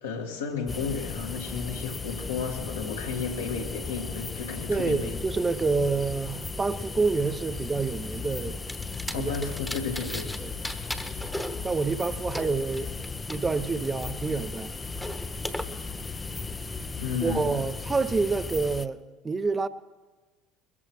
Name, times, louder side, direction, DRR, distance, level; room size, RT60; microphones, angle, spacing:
voice 1, 0.0-5.1 9.1-10.3 17.0-17.7, left 5 dB, 85° left, 1.8 m, -33 dB
sound 1, 0.7-18.9, left 4 dB, 25° left, 0.5 m, -36 dB
voice 2, 4.7-8.7 9.2-9.3 10.4-10.5 11.6-12.9 13.3-14.7 17.2-19.7, right 4 dB, 25° right, 0.7 m, -28 dB
sound 2, 8.7-10.4 10.6-13.4 13.8-15.6, equal, 5° left, 1.1 m, -38 dB
22.0 x 14.5 x 3.1 m
hypercardioid pair, 65°, 0 cm